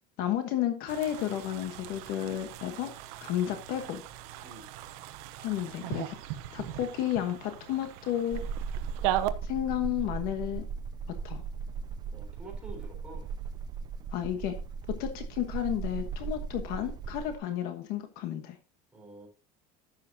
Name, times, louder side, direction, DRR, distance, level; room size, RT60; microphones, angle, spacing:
voice 1, 0.2-2.9 3.2-4.0 5.4-6.2 6.5-8.4 9.4-10.6 11.2-11.4 14.1-14.5 15.0-18.6, left 11 dB, 55° left, 7 dB, 1.3 m, -32 dB
sound 1, 0.9-9.3, right 13 dB, 85° right, 0.9 m, -38 dB
sound 2, 8.3-17.4, right 6 dB, 20° right, 0.5 m, -37 dB
voice 2, 12.1-13.3 18.9-19.3, right 2 dB, 5° right, -2 dB, 3.8 m, -47 dB
11.5 x 8.6 x 2.8 m, 0.33 s
cardioid pair, 180°, 19 cm